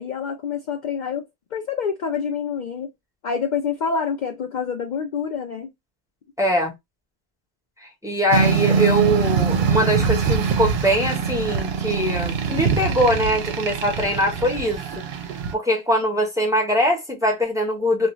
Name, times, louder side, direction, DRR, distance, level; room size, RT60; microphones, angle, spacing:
voice 1, 0.0-2.9 3.2-5.7, left 6 dB, 55° left, 0.5 m, -27 dB
voice 2, 6.4-6.7 7.8-15.0 15.5-18.1, equal, 5° right, 0.8 m, -22 dB
sound 1, 8.3-15.5, right 6 dB, 70° right, 0.8 m, -23 dB
2.4 x 2.3 x 3.0 m
omnidirectional pair, 1.1 m